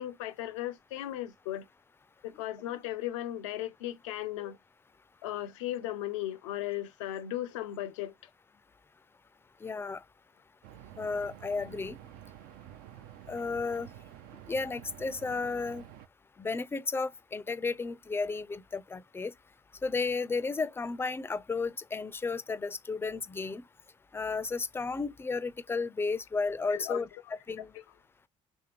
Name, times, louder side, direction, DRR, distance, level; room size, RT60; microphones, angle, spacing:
voice 1, 0.0-1.7 2.2-4.6 5.2-8.1 26.7-27.9, left 13 dB, 80° left, 0.5 m, -37 dB
voice 2, 9.6-10.0 11.0-12.0 13.3-13.9 14.5-15.8 16.4-19.3 19.8-23.6 24.1-27.1 27.5-27.7, left 4 dB, 15° left, 0.4 m, -33 dB
sound 1, 10.6-16.1, right 11 dB, 65° right, 0.5 m, -50 dB
3.5 x 3.3 x 2.9 m
hypercardioid pair, 60°, 16 cm